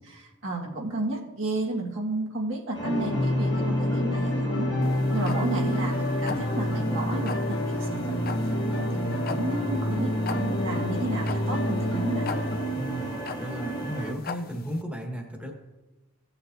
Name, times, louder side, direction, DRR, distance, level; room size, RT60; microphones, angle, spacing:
voice 1, 0.1-4.7 5.1-8.1 8.8-12.4, right 2 dB, 75° right, -1 dB, 1.7 m, -32 dB
sound 1, 2.7-14.1, right 2 dB, 25° left, 1.2 m, -34 dB
sound 2, 2.8-12.6, left 1 dB, 75° left, 1.3 m, -28 dB
sound 3, 4.8-14.8, left 5 dB, 50° left, 0.5 m, -40 dB
voice 2, 12.7-15.5, equal, 5° right, 1 dB, 1.4 m, -35 dB
16.0 x 7.0 x 2.7 m, 1.1 s
head